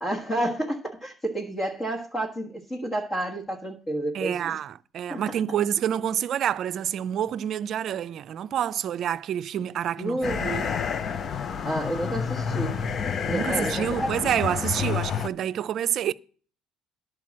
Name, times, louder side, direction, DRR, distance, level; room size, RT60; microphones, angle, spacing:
voice 1, 0.0-4.6 5.1-5.2 10.0-10.6 11.6-12.8 13.2-14.1 14.7-15.0, right 1 dB, 20° left, 1.4 m, -30 dB
voice 2, 4.1-10.7 13.3-16.1, right 10 dB, 55° right, 0.5 m, -28 dB
sound 1, 10.2-15.3, left 7 dB, 45° left, 0.6 m, -29 dB
11.0 x 4.7 x 7.4 m
cardioid pair, 100°, 0 cm